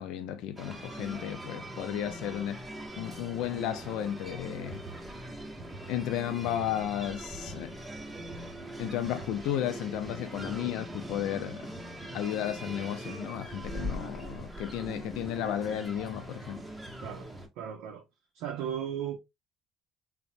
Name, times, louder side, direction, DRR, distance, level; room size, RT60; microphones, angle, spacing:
voice 1, 0.0-2.6 3.0-4.8 5.9-7.7 8.8-11.7 12.1-16.6, left 11 dB, 80° left, 0.4 m, -33 dB
sound 1, 0.6-17.5, right 1 dB, 10° right, 0.7 m, -41 dB
voice 2, 17.6-18.0 18.3-19.2, right 9 dB, 85° right, 0.5 m, -35 dB
3.0 x 2.1 x 2.5 m
cardioid pair, 100°, 0 cm